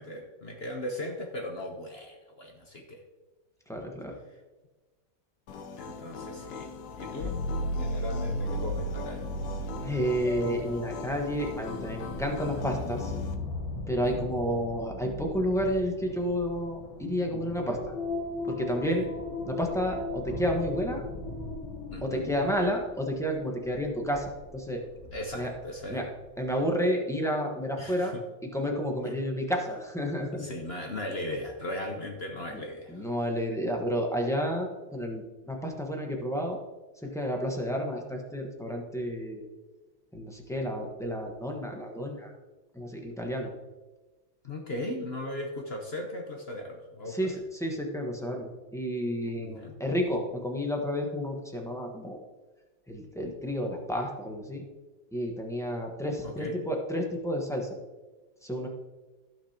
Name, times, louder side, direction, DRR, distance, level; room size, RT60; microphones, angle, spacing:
voice 1, 0.0-3.0 5.8-7.4 7.8-9.2 14.1-14.3 18.9-19.1 21.9-22.3 25.1-26.1 27.8-28.2 29.0-29.1 30.3-33.1 44.4-47.3 49.4-49.7 56.2-56.6, left 1 dB, 45° left, 2 dB, 0.9 m, -38 dB
voice 2, 3.7-4.2 9.8-13.1 13.9-17.9 18.4-19.1 19.4-21.0 22.0-24.8 25.3-25.5 25.9-26.0 26.4-28.2 28.4-30.4 32.5-32.6 32.9-36.6 37.0-39.4 40.1-42.3 42.7-43.5 47.1-52.2 52.9-54.6 55.1-57.7 58.4-58.7, equal, ahead, 1 dB, 0.7 m, -31 dB
sound 1, 5.5-13.4, left 6 dB, 65° left, 1.1 m, -41 dB
sound 2, 7.2-25.9 26.4-26.5, left 1 dB, 80° left, 2.5 m, -36 dB
15.0 x 6.1 x 2.9 m, 1.2 s
omnidirectional pair, 2.2 m